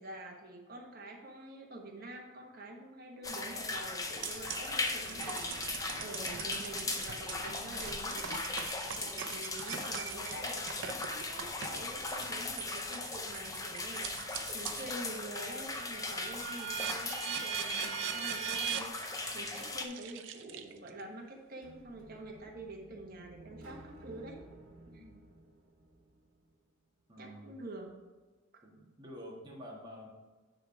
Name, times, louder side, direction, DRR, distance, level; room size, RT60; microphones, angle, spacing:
voice 1, 0.0-8.2 9.0-14.3 14.5-24.4 24.9-25.0 27.2-27.9 28.5-28.6, right 2 dB, 45° right, 0 dB, 1.3 m, -47 dB
sound 1, 3.2-19.8, left 3 dB, 15° left, 0.5 m, -38 dB
sound 2, 4.2-14.9 15.4-21.0, right 9 dB, 65° right, 0.5 m, -42 dB
sound 3, 21.6-26.6, right 1 dB, 85° right, 1.0 m, -55 dB
voice 2, 24.9-25.2 27.1-27.5 28.6-30.1, equal, 20° right, -3 dB, 1.5 m, -49 dB
9.6 x 3.5 x 4.7 m, 1.3 s
head